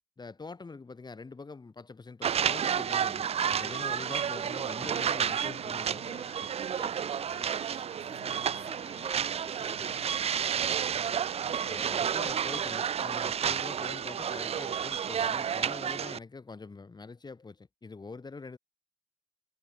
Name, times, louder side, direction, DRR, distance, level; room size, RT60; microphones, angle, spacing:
voice 1, 0.0-6.0 9.2-9.3 11.4-18.6, left 4 dB, 30° left, 3.2 m, -44 dB
sound 1, 2.2-16.2, right 8 dB, 50° right, 0.6 m, -31 dB
sound 2, 3.3-12.3, left 20 dB, 90° left, 6.9 m, -54 dB
voice 2, 6.1-10.8, right 4 dB, 30° right, 5.0 m, -49 dB
supercardioid pair, 60°, 14 cm